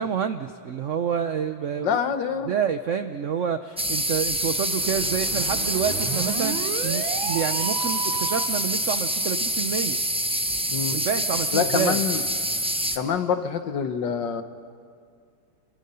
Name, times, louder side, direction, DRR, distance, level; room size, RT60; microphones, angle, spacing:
voice 1, 0.0-2.0 2.4-10.0 10.9-12.0, right 7 dB, 70° right, 9 dB, 0.7 m, -28 dB
voice 2, 1.8-2.5 10.7-11.0 11.5-12.2 12.9-14.4, left 7 dB, 65° left, 9 dB, 1.7 m, -26 dB
sound 1, 3.8-13.0, right 1 dB, 5° right, 0.4 m, -26 dB
sound 2, 4.7-8.7, right 8 dB, 85° right, 1.7 m, -33 dB
30.0 x 24.0 x 5.6 m, 2.2 s
omnidirectional pair, 2.2 m